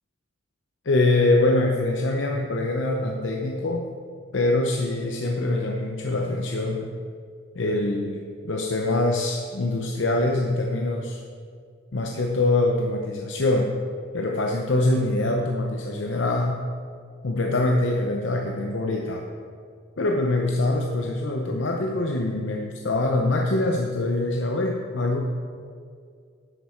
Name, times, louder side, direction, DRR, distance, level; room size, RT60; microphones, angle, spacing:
voice 1, 0.8-3.8 4.3-6.9 7.5-8.2 8.4-11.2 11.9-13.7 14.1-16.7 17.2-19.2 20.0-25.2, left 2 dB, 80° left, 1 dB, 0.7 m, -24 dB
10.5 x 8.5 x 4.4 m, 2.2 s
head